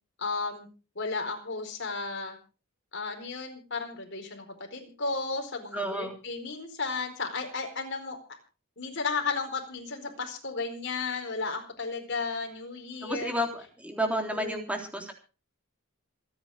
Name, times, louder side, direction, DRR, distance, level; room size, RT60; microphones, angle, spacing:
voice 1, 0.2-0.7 0.9-2.4 2.9-8.2 8.8-13.3 14.0-14.7, left 4 dB, 55° left, 4 dB, 4.5 m, -34 dB
voice 2, 5.7-6.2 13.0-15.1, equal, 5° right, 3 dB, 3.4 m, -31 dB
27.0 x 9.6 x 3.6 m, 0.34 s
head